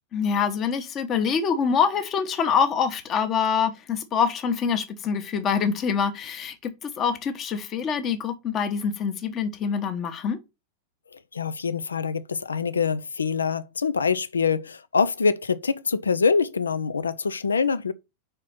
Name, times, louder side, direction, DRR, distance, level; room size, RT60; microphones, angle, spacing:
voice 1, 0.1-10.4, left 6 dB, 30° left, 1.1 m, -25 dB
voice 2, 11.1-17.9, left 5 dB, 75° left, 0.5 m, -25 dB
5.0 x 4.4 x 5.6 m
figure-of-eight pair, 90°, 0 cm